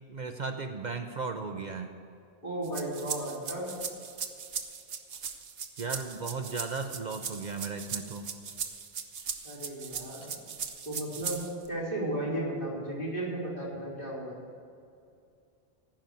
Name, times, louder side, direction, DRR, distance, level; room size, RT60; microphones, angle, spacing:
voice 1, 0.1-1.9 5.8-8.3, right 4 dB, 50° right, 6 dB, 0.7 m, -36 dB
voice 2, 2.4-3.7 9.4-10.3 10.9-14.4, right 1 dB, 55° left, -6 dB, 4.0 m, -34 dB
sound 1, 2.6-11.7, right 6 dB, 65° right, 1.1 m, -38 dB
15.0 x 5.9 x 9.6 m, 2.5 s
omnidirectional pair, 1.1 m